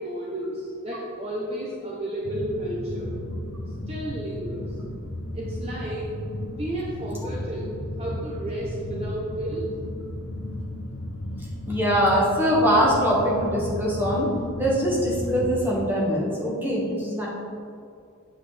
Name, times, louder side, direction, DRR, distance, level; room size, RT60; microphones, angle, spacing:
voice 1, 0.0-3.1 3.9-4.7 5.3-6.1 6.5-7.7 8.0-9.7, right 1 dB, 30° right, -5 dB, 0.9 m, -32 dB
sound 1, 2.2-15.6, left 1 dB, 60° left, 0.7 m, -34 dB
voice 2, 11.7-14.3 14.6-17.3, equal, 10° right, -5 dB, 1.6 m, -22 dB
8.2 x 7.3 x 3.4 m, 2.4 s
head